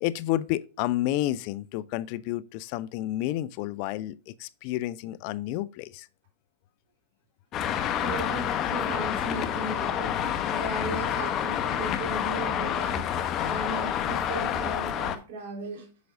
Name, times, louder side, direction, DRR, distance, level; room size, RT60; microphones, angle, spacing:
voice 1, 0.0-6.1, left 14 dB, 50° left, 0.5 m, -30 dB
Traffic noise roadway noise, 7.5-15.2, left 9 dB, 35° left, 0.9 m, -28 dB
voice 2, 8.0-15.9, right 3 dB, 60° right, 3.7 m, -37 dB
8.2 x 6.0 x 2.6 m
hypercardioid pair, 115°, 0 cm